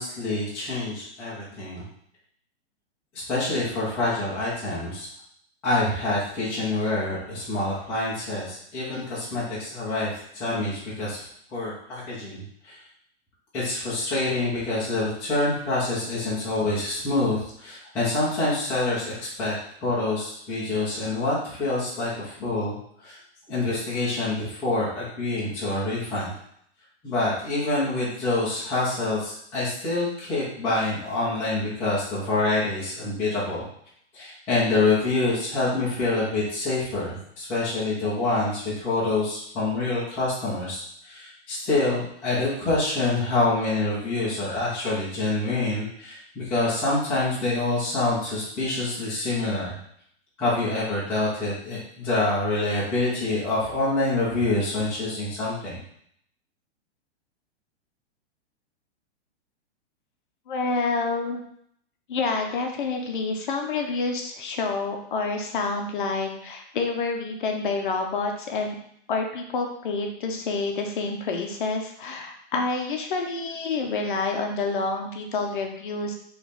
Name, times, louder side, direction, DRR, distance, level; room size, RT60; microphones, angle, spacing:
voice 1, 0.0-1.9 3.3-5.1 5.6-11.2 11.5-12.8 13.5-22.8 23.0-23.2 23.5-26.3 27.0-33.6 34.1-49.8 50.4-55.8, left 2 dB, 5° left, -11 dB, 0.5 m, -26 dB
voice 2, 60.5-61.4 62.1-68.7 69.1-76.1, left 3 dB, 45° left, 3 dB, 0.7 m, -28 dB
4.0 x 3.1 x 3.4 m, 0.69 s
hypercardioid pair, 170°, 34 cm